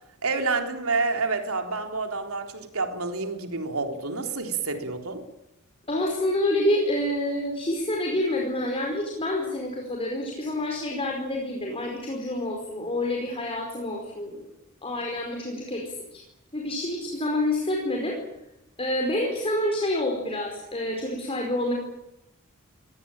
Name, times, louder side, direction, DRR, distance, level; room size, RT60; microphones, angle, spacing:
voice 1, 0.2-5.2, right 4 dB, 70° right, 5 dB, 3.9 m, -28 dB
voice 2, 5.9-14.4 14.8-15.8 16.1-16.2 16.5-18.2 18.8-21.7, left 1 dB, 25° left, 0 dB, 4.8 m, -27 dB
25.0 x 19.5 x 9.0 m, 0.86 s
head